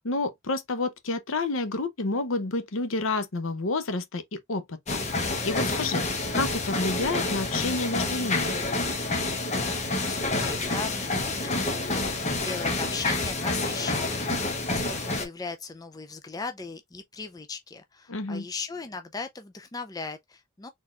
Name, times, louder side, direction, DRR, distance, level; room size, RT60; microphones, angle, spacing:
voice 1, 0.0-6.0 6.3-8.6 18.1-18.4, left 3 dB, 65° left, 0.8 m, -30 dB
sound 1, 4.9-15.3, left 2 dB, 35° left, 1.0 m, -28 dB
voice 2, 9.7-20.7, left 4 dB, 20° left, 0.4 m, -38 dB
4.2 x 3.5 x 2.4 m
head